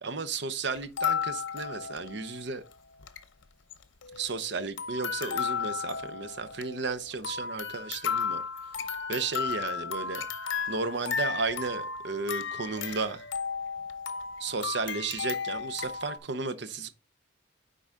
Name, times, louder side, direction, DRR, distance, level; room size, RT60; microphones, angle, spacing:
voice 1, 0.0-2.6 4.1-8.4 8.8-10.2 10.7-13.2 14.4-16.9, right 4 dB, 60° right, 0.7 m, -34 dB
sound 1, 0.8-2.4 2.7-2.8 3.0-3.2 3.7-4.5 4.8-16.2, left 6 dB, 75° left, 0.7 m, -34 dB
9.7 x 3.9 x 3.6 m
head